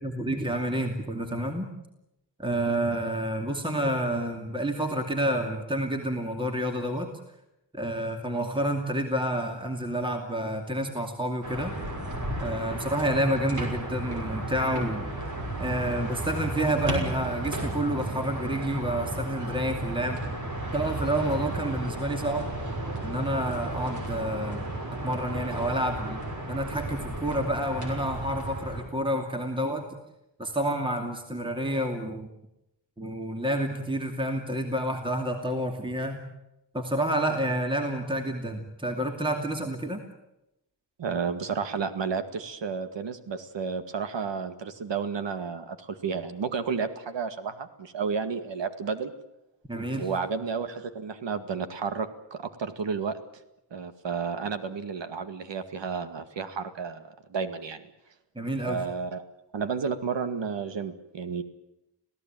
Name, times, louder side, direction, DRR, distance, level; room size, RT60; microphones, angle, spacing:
voice 1, 0.0-1.7 2.4-7.1 7.7-11.8 12.4-15.1 15.6-20.2 20.7-22.5 23.0-24.7 25.0-26.2 26.5-29.8 30.4-32.3 33.0-36.2 36.7-40.0 49.7-50.1 58.3-58.9, right 1 dB, 10° right, 4 dB, 2.6 m, -29 dB
sound 1, 11.4-28.8, right 1 dB, 45° right, 6.3 m, -33 dB
voice 2, 41.0-49.1 50.0-53.2 53.7-57.0 57.3-57.9 58.6-59.2 59.5-61.4, right 5 dB, 85° right, 10 dB, 2.1 m, -32 dB
27.0 x 17.0 x 9.1 m, 0.87 s
wide cardioid pair, 165°, 42 cm